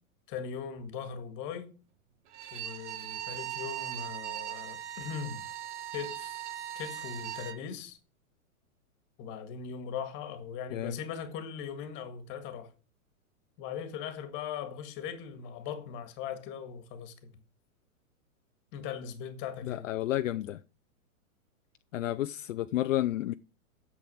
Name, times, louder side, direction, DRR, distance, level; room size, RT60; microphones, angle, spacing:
voice 1, 0.3-1.7 2.5-5.4 5.9-6.4 6.7-8.0 9.2-12.7 13.6-17.1 18.7-19.9, left 7 dB, 25° left, 1.8 m, -39 dB
Bowed string instrument, 2.3-7.6, right 12 dB, 50° right, 1.4 m, -39 dB
voice 2, 19.6-20.6 21.9-23.3, left 14 dB, 60° left, 0.6 m, -31 dB
8.5 x 7.6 x 7.7 m
hypercardioid pair, 160°, 43 cm